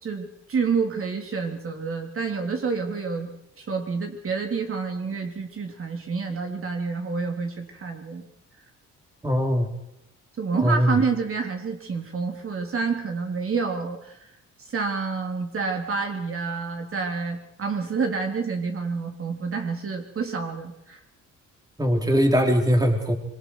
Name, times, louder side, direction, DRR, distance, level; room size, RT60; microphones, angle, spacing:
voice 1, 0.0-3.3 3.6-8.2 10.4-14.2 14.6-21.0, right 5 dB, 45° right, 3 dB, 3.3 m, -28 dB
voice 2, 9.2-9.7 10.5-11.0 21.8-23.1, equal, 10° right, 3 dB, 3.5 m, -21 dB
26.0 x 22.0 x 4.8 m, 0.80 s
cardioid pair, 90°, 30 cm